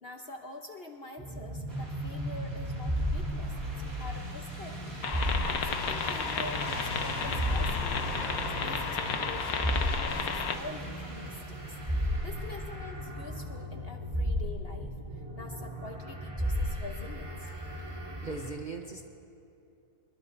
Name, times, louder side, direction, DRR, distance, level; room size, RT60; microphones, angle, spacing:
voice 1, 0.0-8.0 8.6-11.8 12.2-17.5, left 2 dB, 45° left, 3 dB, 0.9 m, -46 dB
sound 1, 1.2-18.5, equal, 15° right, 2.7 m, -35 dB
sound 2, 1.7-13.2, equal, 55° right, 4.0 m, -42 dB
sound 3, 5.0-10.6, left 6 dB, 65° left, 1.3 m, -33 dB
voice 2, 17.8-19.0, right 3 dB, 35° right, 2 dB, 0.8 m, -40 dB
25.0 x 22.0 x 2.6 m, 2.6 s
omnidirectional pair, 1.7 m